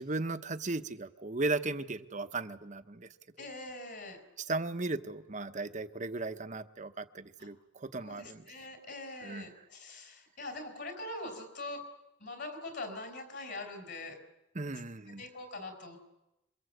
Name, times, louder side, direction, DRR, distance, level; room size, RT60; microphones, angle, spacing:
voice 1, 0.0-3.1 3.4-3.5 4.4-8.7 9.2-9.5 14.5-15.2, right 3 dB, 35° right, 10 dB, 1.0 m, -36 dB
voice 2, 3.4-4.2 7.4-7.5 8.0-11.8 12.2-14.2 15.2-16.0, left 2 dB, 55° left, 4 dB, 4.9 m, -43 dB
27.0 x 23.5 x 8.0 m, 0.95 s
head